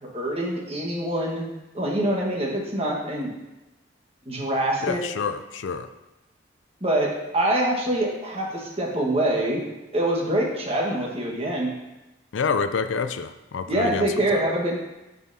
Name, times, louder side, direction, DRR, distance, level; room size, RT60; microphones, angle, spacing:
voice 1, 0.0-1.5 1.7-3.3 4.2-5.0 6.8-9.6 9.9-11.7 13.7-14.8, right 1 dB, 30° right, -1 dB, 1.5 m, -25 dB
voice 2, 4.8-5.9 12.3-14.1 14.3-14.4, left 5 dB, 80° left, 10 dB, 0.4 m, -27 dB
11.0 x 5.4 x 2.7 m, 1.0 s
head